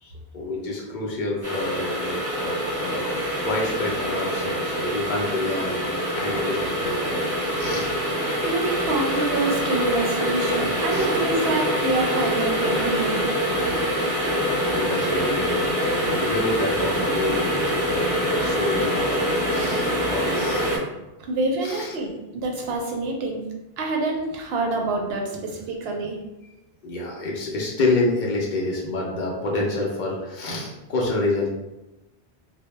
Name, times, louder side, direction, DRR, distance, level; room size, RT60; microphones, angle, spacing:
voice 1, 0.0-7.2 7.6-7.9 10.9-11.1 14.1-20.8 21.6-22.0 26.8-31.5, left 2 dB, 60° left, -2 dB, 0.6 m, -28 dB
sound 1, 1.4-20.8, equal, 25° right, 0.7 m, -25 dB
voice 2, 8.4-13.3 21.2-23.4 23.8-26.2, right 2 dB, 75° right, 1 dB, 0.8 m, -26 dB
2.1 x 2.1 x 3.1 m, 0.97 s
omnidirectional pair, 1.1 m